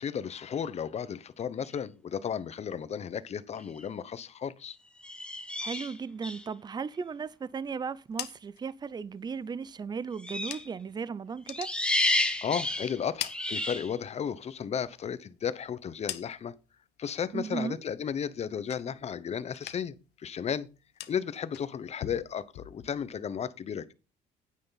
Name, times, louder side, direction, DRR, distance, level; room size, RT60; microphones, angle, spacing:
voice 1, 0.0-4.8 12.4-16.5 17.0-20.7 21.1-23.9, left 8 dB, 40° left, 0.9 m, -34 dB
sound 1, 3.6-3.8 5.0-6.5 10.2-10.7 11.5-13.9, left 1 dB, 5° left, 1.4 m, -31 dB
voice 2, 5.6-11.7 17.3-17.8, right 5 dB, 25° right, 0.6 m, -36 dB
sound 2, 7.9-11.0 11.3-12.6 12.9-14.2 14.6-16.7 17.1-17.6 17.9-19.2 19.5-20.1 20.3-23.2, left 14 dB, 80° left, 1.0 m, -44 dB
9.6 x 9.0 x 4.1 m
cardioid pair, 110°, 17 cm